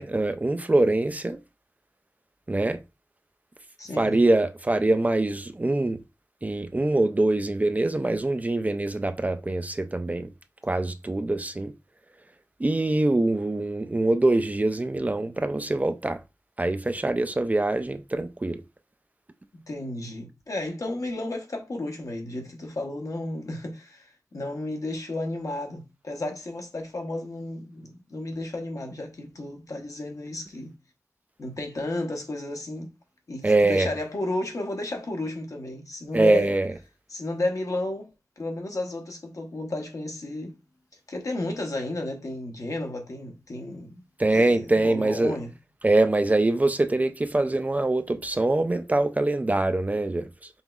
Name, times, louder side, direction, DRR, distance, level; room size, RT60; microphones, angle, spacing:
voice 1, 0.0-1.4 2.5-2.8 4.0-6.0 6.4-10.3 10.6-11.7 12.6-16.2 16.6-18.6 33.4-33.9 36.1-36.7 44.2-45.4 45.8-50.5, right 2 dB, 25° right, 0.3 m, -24 dB
voice 2, 3.8-4.2 19.5-30.7 31.4-32.9 33.3-36.5 37.1-38.1 38.4-40.5 41.1-44.0 44.3-45.5, left 2 dB, 60° left, 0.9 m, -33 dB
5.4 x 3.0 x 2.3 m
wide cardioid pair, 75°, 6 cm